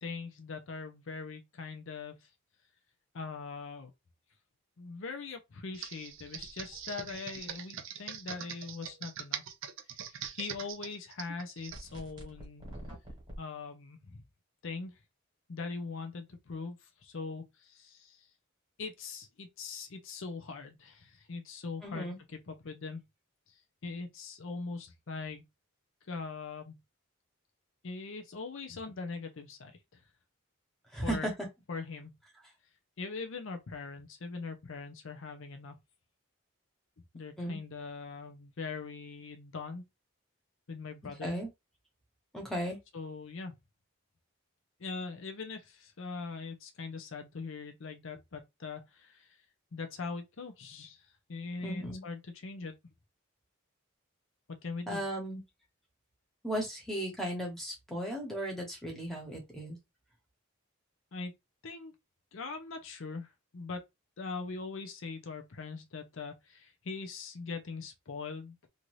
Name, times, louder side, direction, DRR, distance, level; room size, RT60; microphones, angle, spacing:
voice 1, 0.0-2.3 3.1-3.9 4.8-9.4 9.9-12.7 13.4-14.2 14.6-15.0 15.5-18.3 18.8-23.0 23.5-25.5 26.1-26.8 27.8-30.0 31.0-31.3 31.7-32.1 33.0-35.8 37.1-39.8 40.7-41.3 42.9-43.5 44.8-49.4 49.7-52.7 54.6-55.0 61.1-61.3 61.6-61.9 62.3-63.8 64.2-68.5, left 4 dB, 65° left, 0.6 m, -41 dB
Computer keyboard, 5.7-11.8, right 8 dB, 65° right, 0.5 m, -42 dB
sound 1, 11.7-13.4, equal, 20° right, 1.1 m, -45 dB
voice 2, 21.8-22.2 30.9-31.3 37.4-37.6 41.2-41.5 42.3-42.8 51.6-52.0 54.9-55.4 56.4-59.8, right 1 dB, ahead, 0.9 m, -36 dB
2.7 x 2.5 x 3.0 m
head